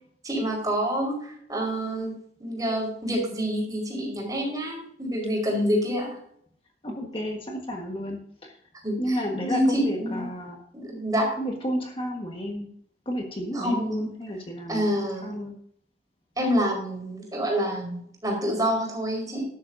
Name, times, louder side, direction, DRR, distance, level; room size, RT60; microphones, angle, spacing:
voice 1, 0.2-2.1 2.4-6.2 8.8-10.3 10.7-11.3 13.5-14.1 14.7-15.4 16.4-19.4, equal, 20° right, 0 dB, 4.7 m, -27 dB
voice 2, 6.8-8.5 9.0-10.6 11.3-12.7 13.0-15.5, equal, 30° left, 1 dB, 1.5 m, -32 dB
13.0 x 12.0 x 2.7 m, 0.65 s
head